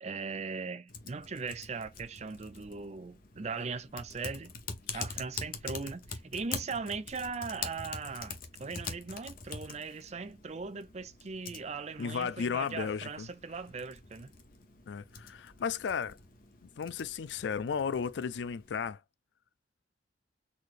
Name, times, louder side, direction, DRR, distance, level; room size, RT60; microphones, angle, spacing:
voice 1, 0.0-4.5 4.9-14.3, right 4 dB, 40° right, 0.5 m, -39 dB
Typing, 0.9-18.9, left 5 dB, 55° left, 0.9 m, -45 dB
voice 2, 12.0-13.3 14.9-16.2 16.8-19.0, left 6 dB, 85° left, 0.4 m, -34 dB
4.2 x 3.2 x 2.5 m
head